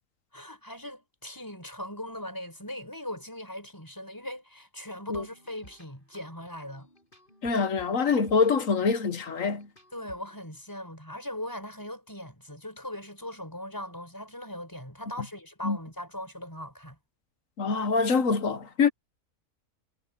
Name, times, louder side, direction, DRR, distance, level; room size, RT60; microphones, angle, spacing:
voice 1, 0.3-6.9 9.9-17.0, left 1 dB, 10° left, 4.9 m, -40 dB
sound 1, 5.1-10.4, left 1 dB, 35° left, 8.2 m, -56 dB
voice 2, 7.4-9.7 15.6-15.8 17.6-18.9, left 5 dB, 60° left, 1.6 m, -25 dB
omnidirectional pair, 1.6 m